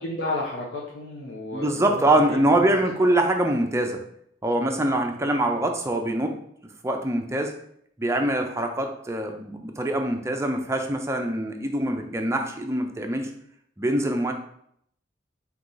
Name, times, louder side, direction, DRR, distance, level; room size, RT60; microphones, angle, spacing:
voice 1, 0.0-2.7 3.1-3.2, left 2 dB, 70° left, -3 dB, 0.6 m, -32 dB
voice 2, 1.5-4.0 4.4-6.3 6.8-7.5 8.0-13.3 13.8-14.3, right 1 dB, 15° right, 3 dB, 0.5 m, -24 dB
3.8 x 2.9 x 3.8 m, 0.69 s
head